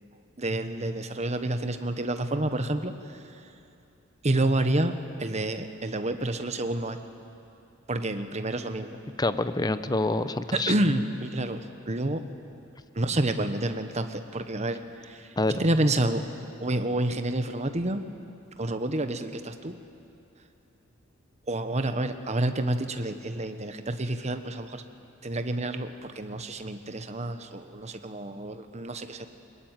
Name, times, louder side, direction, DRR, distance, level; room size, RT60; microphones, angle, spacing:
voice 1, 0.4-3.2 4.2-7.0 7.9-9.0 10.5-12.2 12.9-16.2 16.6-18.0 18.6-19.8 21.5-24.8 25.2-29.3, right 1 dB, 35° right, 8 dB, 1.2 m, -29 dB
voice 2, 9.2-10.7 15.4-15.6, left 2 dB, 20° left, 12 dB, 0.8 m, -27 dB
22.5 x 20.5 x 9.1 m, 2.7 s
head